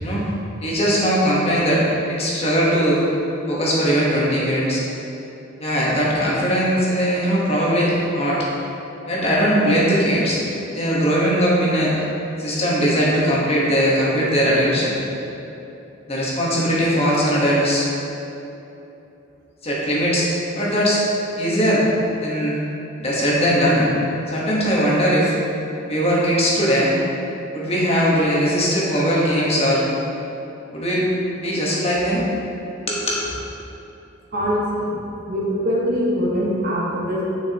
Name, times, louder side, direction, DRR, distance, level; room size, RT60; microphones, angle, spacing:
voice 1, 0.6-3.1 3.5-4.8 5.6-8.5 9.1-10.4 10.7-11.9 12.4-15.0 16.1-17.9 19.6-20.3 20.5-21.0 21.4-21.8 22.2-22.6 23.0-23.9 24.3-25.3 25.9-26.9 27.5-29.8 30.7-31.1 31.4-32.2 32.8-33.3, equal, 30° left, -6 dB, 1.3 m, -19 dB
voice 2, 34.3-34.9 35.3-37.2, equal, 45° right, -5 dB, 1.3 m, -22 dB
6.6 x 6.5 x 2.9 m, 2.9 s
head